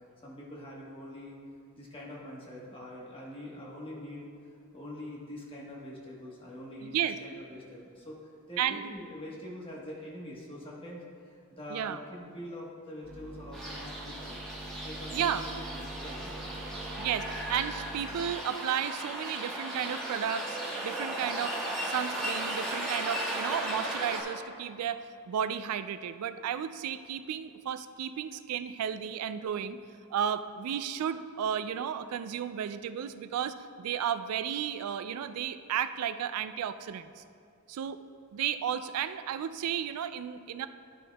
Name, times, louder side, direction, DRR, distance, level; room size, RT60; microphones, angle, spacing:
voice 1, 0.2-1.4 1.8-4.3 4.7-14.4 14.8-16.4, left 1 dB, 25° left, -4 dB, 1.2 m, -44 dB
voice 2, 6.8-7.2 8.6-8.9 11.7-12.0 15.1-15.4 17.0-20.6 20.8-21.5 21.8-29.8 30.1-37.2 37.7-38.0 38.3-40.7, right 9 dB, 85° right, 11 dB, 0.3 m, -33 dB
sound 1, 13.0-18.3, right 1 dB, 60° right, 1.7 m, -44 dB
sound 2, 13.5-24.2, right 1 dB, 5° left, 1.1 m, -36 dB
11.5 x 6.2 x 2.3 m, 2.4 s
head